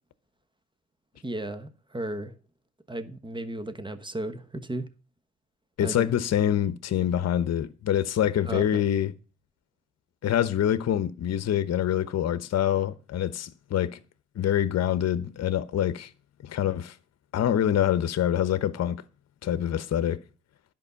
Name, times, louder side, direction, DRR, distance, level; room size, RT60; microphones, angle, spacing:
voice 1, 1.2-2.4 2.9-4.8 5.8-6.1 6.4-6.5 8.4-8.9, right 1 dB, 15° right, 1.2 m, -34 dB
voice 2, 5.8-9.1 10.2-14.0 14.4-16.1 16.4-16.9 17.3-19.0 19.4-20.2, left 10 dB, 60° left, 0.9 m, -25 dB
10.5 x 5.5 x 7.0 m
cardioid pair, 90°, 30 cm